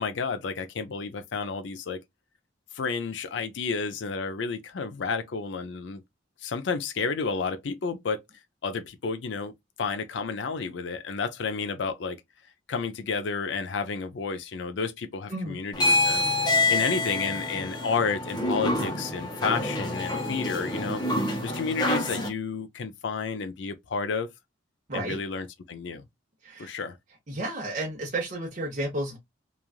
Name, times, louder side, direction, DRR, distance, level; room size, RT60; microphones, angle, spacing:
voice 1, 0.0-2.0 2.7-6.0 6.4-8.2 8.6-9.5 9.8-12.2 12.7-16.3 16.7-21.1 21.4-24.3 24.9-26.0 26.6-27.0, left 5 dB, 70° left, 0.5 m, -31 dB
sound 1, 15.7-22.3, left 2 dB, 20° left, 0.8 m, -27 dB
voice 2, 24.9-25.2 26.4-26.7 27.3-29.2, right 1 dB, 40° right, 0.9 m, -32 dB
3.1 x 2.4 x 2.3 m
head